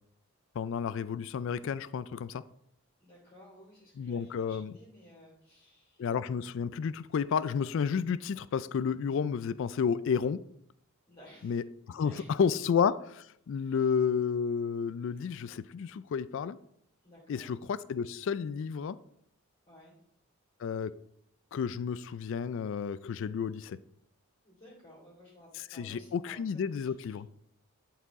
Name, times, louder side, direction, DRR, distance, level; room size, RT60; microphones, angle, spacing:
voice 1, 0.6-2.4 4.0-4.7 6.0-10.4 11.4-12.1 12.4-16.6 17.3-19.0 20.6-20.9 21.5-23.8 25.8-27.3, left 6 dB, 60° left, 17 dB, 0.3 m, -31 dB
voice 2, 3.0-6.0 11.1-11.6 11.9-12.4 13.7-13.9 17.0-17.6 19.7-20.0 24.4-27.2, left 1 dB, 30° left, -7 dB, 2.6 m, -56 dB
11.0 x 4.8 x 3.6 m, 0.70 s
head